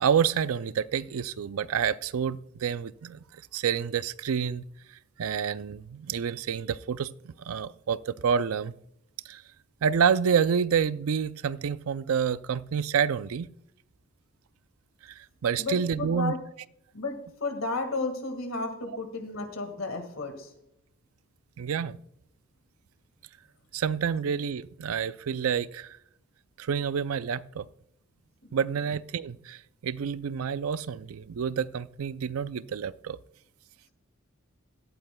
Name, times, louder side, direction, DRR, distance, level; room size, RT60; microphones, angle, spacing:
voice 1, 0.0-4.7 5.2-8.7 9.3-9.4 9.8-13.5 15.0-16.3 21.6-22.0 23.7-26.0 26.6-27.7 28.5-33.2, right 7 dB, 90° right, 16 dB, 0.4 m, -28 dB
voice 2, 15.6-16.4 16.9-20.5, left 3 dB, 75° left, 7 dB, 1.9 m, -33 dB
17.0 x 12.0 x 2.2 m, 0.75 s
head